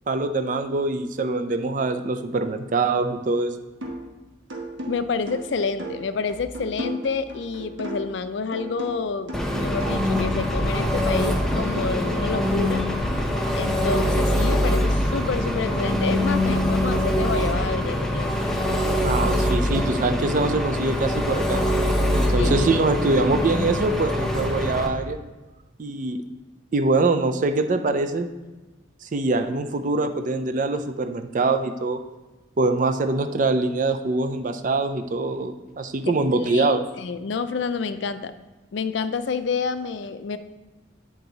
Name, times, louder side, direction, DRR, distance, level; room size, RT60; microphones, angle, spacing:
voice 1, 0.1-3.5 19.0-21.6 22.1-25.2 25.8-26.2 26.7-28.3 29.0-32.0 32.6-36.8, right 3 dB, 40° right, 8 dB, 0.4 m, -24 dB
sound 1, 3.8-4.1 4.5-8.2 8.5-11.8, right 1 dB, 70° right, 1.2 m, -35 dB
voice 2, 4.9-12.9 13.6-18.3 22.4-22.7 36.4-38.3 38.7-40.4, left 4 dB, 65° left, 11 dB, 0.4 m, -28 dB
Engine, 9.3-24.9, left 1 dB, ahead, 0.6 m, -23 dB
8.6 x 4.6 x 3.9 m, 1.2 s
head